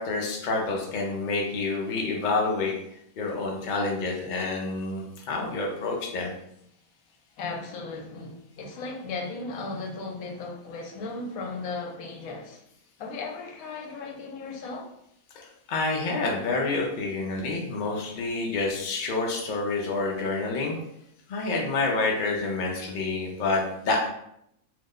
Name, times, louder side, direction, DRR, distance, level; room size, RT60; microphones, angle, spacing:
voice 1, 0.0-2.7 3.2-6.3 15.4-20.8 21.3-24.1, left 3 dB, 55° left, -1 dB, 0.5 m, -28 dB
voice 2, 7.4-12.6 13.0-14.9, left 3 dB, 85° left, 1 dB, 1.1 m, -36 dB
2.8 x 2.1 x 3.6 m, 0.76 s
omnidirectional pair, 1.5 m